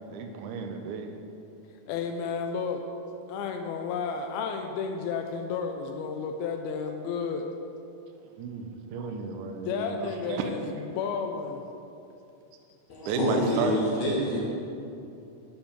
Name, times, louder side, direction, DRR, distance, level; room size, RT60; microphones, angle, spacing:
voice 1, 0.1-1.1 8.4-10.5 13.1-13.8, right 5 dB, 90° right, 5 dB, 1.7 m, -32 dB
voice 2, 1.9-2.9 3.3-7.5 9.7-11.7, left 5 dB, 85° left, 4 dB, 2.5 m, -32 dB
voice 3, 12.9-14.4, left 1 dB, 55° left, -7 dB, 2.7 m, -27 dB
12.0 x 5.3 x 5.2 m, 2.7 s
omnidirectional pair, 4.3 m